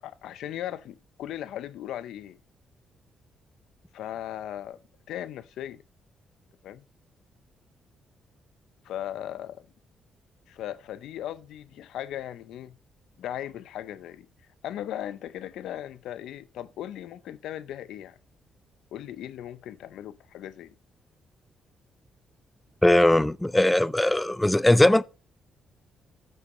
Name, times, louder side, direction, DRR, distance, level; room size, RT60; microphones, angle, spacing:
voice 1, 0.0-2.4 3.9-5.8 6.6-6.8 8.8-9.7 10.5-12.8 13.2-14.3 14.6-18.2 18.9-20.8, left 11 dB, 90° left, 0.5 m, -37 dB
voice 2, 22.8-25.0, left 1 dB, 10° left, 0.4 m, -20 dB
8.4 x 7.1 x 3.7 m
cardioid pair, 110°, 0 cm